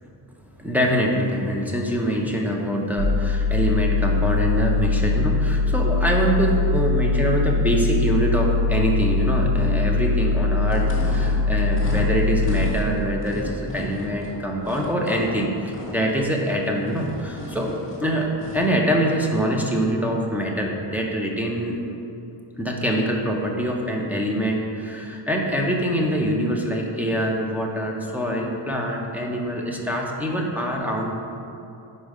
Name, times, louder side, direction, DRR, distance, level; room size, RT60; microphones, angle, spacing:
voice 1, 0.6-21.8 22.6-31.1, equal, 5° right, -2 dB, 0.6 m, -24 dB
sound 1, 3.0-12.7, left 3 dB, 80° right, 0.7 m, -22 dB
sound 2, 10.6-18.7, left 1 dB, 30° left, 1.4 m, -35 dB
5.0 x 4.3 x 4.8 m, 2.7 s
wide cardioid pair, 120°, 44 cm